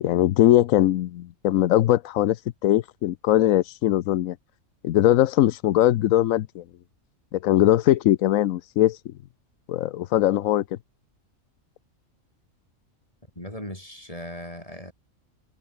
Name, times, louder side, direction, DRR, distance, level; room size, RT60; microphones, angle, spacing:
voice 1, 0.0-2.4 2.6-4.4 4.8-6.6 7.3-9.1 9.7-10.6, left 13 dB, 85° left, 1.0 m, -20 dB
voice 2, 13.4-14.9, left 1 dB, 25° left, 7.2 m, -38 dB
omnidirectional pair, 1.4 m